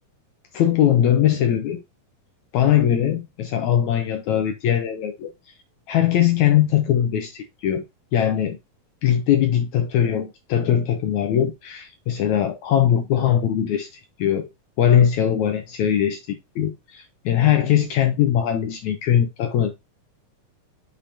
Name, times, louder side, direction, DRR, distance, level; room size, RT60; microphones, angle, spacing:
voice 1, 0.5-1.8 2.5-5.3 5.9-7.8 8.1-8.6 9.0-14.5 14.8-19.7, left 10 dB, 75° left, 1.7 m, -20 dB
6.8 x 5.5 x 2.7 m
omnidirectional pair, 4.2 m